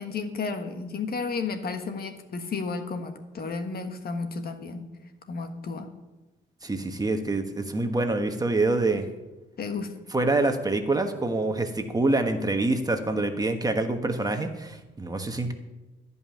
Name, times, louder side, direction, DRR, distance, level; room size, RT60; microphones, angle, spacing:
voice 1, 0.0-4.9 5.3-5.9 9.6-9.9, left 4 dB, 50° left, 7 dB, 1.5 m, -32 dB
voice 2, 6.6-9.1 10.1-15.5, right 2 dB, 20° right, 5 dB, 1.3 m, -26 dB
14.0 x 5.5 x 9.2 m, 1.1 s
cardioid pair, 90°, 20 cm